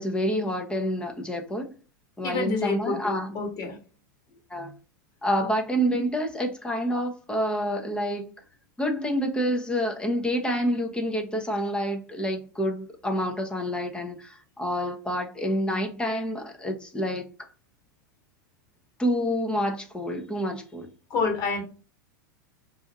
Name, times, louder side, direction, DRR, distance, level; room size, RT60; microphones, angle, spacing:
voice 1, 0.0-1.7 2.2-3.4 4.5-4.7 5.2-8.3 8.8-17.3 19.0-20.9, equal, 10° left, 0.7 m, -28 dB
voice 2, 2.2-3.8 21.1-21.6, left 4 dB, 40° left, 1.5 m, -28 dB
2.6 x 2.4 x 4.0 m
hypercardioid pair, 105°, 10 cm